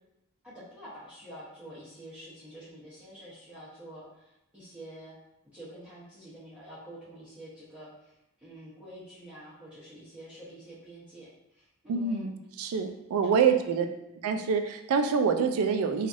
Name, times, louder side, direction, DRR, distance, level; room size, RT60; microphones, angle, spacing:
voice 1, 0.4-5.1 5.5-12.3 13.2-13.6, right 1 dB, 5° right, -12 dB, 0.8 m, -47 dB
voice 2, 11.9-13.9 14.2-16.1, right 6 dB, 75° right, 6 dB, 0.3 m, -26 dB
3.1 x 2.3 x 2.6 m, 0.87 s
head